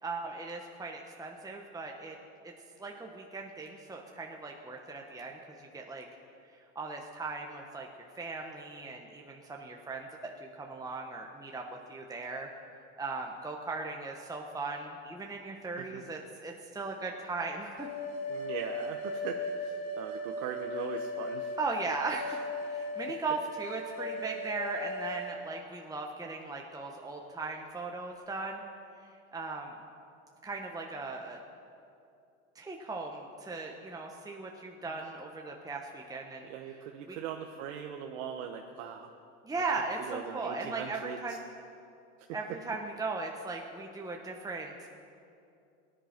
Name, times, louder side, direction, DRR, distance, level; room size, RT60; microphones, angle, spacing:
voice 1, 0.0-2.2 2.4-2.5 2.8-6.1 6.5-7.9 8.2-12.5 13.0-17.9 21.6-28.6 29.0-29.7 30.4-31.4 32.5-37.2 39.4-41.4 42.3-44.9, right 3 dB, 10° right, 1 dB, 1.2 m, -38 dB
sound 1, 17.8-25.4, left 2 dB, 50° left, 4.5 m, -37 dB
voice 2, 18.3-21.5 36.5-39.1 40.1-41.4, right 8 dB, 75° right, 3 dB, 1.1 m, -40 dB
17.5 x 10.5 x 5.9 m, 2.6 s
hypercardioid pair, 95°, 37 cm